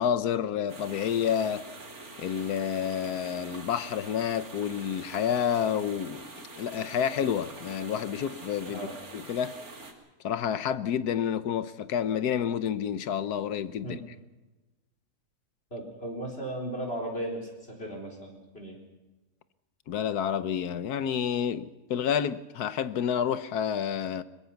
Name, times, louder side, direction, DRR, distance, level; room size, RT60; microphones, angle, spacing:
voice 1, 0.0-1.7 2.2-8.9 9.1-9.6 10.2-14.0 19.9-24.2, left 8 dB, 90° left, 1.4 m, -29 dB
sound 1, 0.7-9.9, right 3 dB, 70° right, 3.1 m, -45 dB
voice 2, 15.7-18.8, right 1 dB, 40° left, 4.5 m, -36 dB
22.5 x 21.0 x 5.9 m
omnidirectional pair, 1.6 m